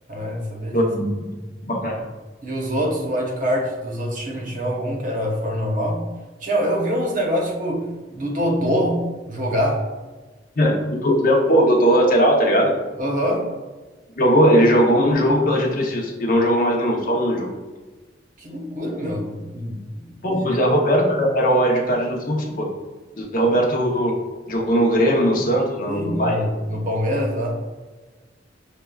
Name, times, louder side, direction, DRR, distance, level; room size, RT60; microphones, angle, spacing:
voice 1, 0.1-0.9 2.4-6.0 6.4-9.8 13.0-13.5 18.4-20.6 25.9-27.6, equal, 45° right, -1 dB, 0.8 m, -25 dB
voice 2, 0.7-1.3 1.6-2.1 10.6-12.7 14.2-17.5 20.2-22.7 23.2-24.2 24.5-26.4, equal, 50° left, 0 dB, 0.7 m, -19 dB
6.5 x 2.2 x 2.3 m, 1.3 s
head